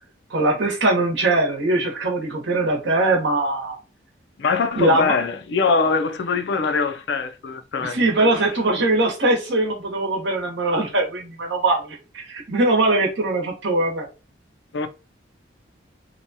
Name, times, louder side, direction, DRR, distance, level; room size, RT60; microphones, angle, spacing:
voice 1, 0.3-3.8 4.8-5.2 7.8-14.1, right 2 dB, 80° right, 1.0 m, -21 dB
voice 2, 4.4-8.0 14.7-14.9, left 4 dB, 65° left, 0.4 m, -22 dB
2.8 x 2.2 x 2.7 m
head